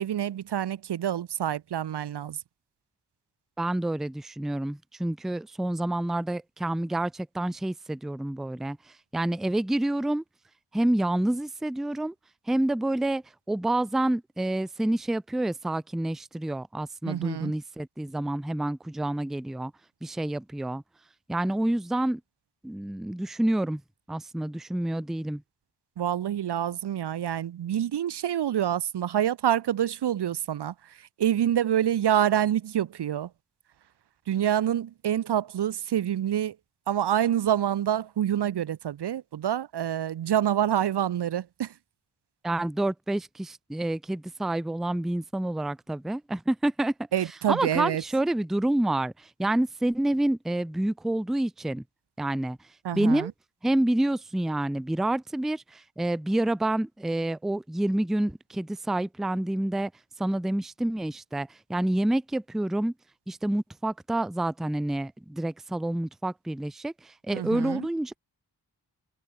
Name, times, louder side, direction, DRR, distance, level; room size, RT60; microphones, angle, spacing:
voice 1, 0.0-2.4 17.0-17.5 26.0-30.7 31.2-33.3 34.3-36.6 36.9-41.7 47.1-48.0 52.8-53.3 67.3-67.9, right 10 dB, 75° right, 0.6 m, -27 dB
voice 2, 3.6-8.8 9.1-10.2 10.7-12.1 12.5-13.2 13.5-19.7 20.0-20.8 21.3-22.2 22.6-23.8 24.1-25.4 42.4-46.9 47.5-49.1 49.4-51.8 52.2-52.6 52.9-53.3 53.6-59.9 60.2-62.9 63.3-68.2, right 1 dB, ahead, 0.4 m, -28 dB
wide cardioid pair, 80°, 41 cm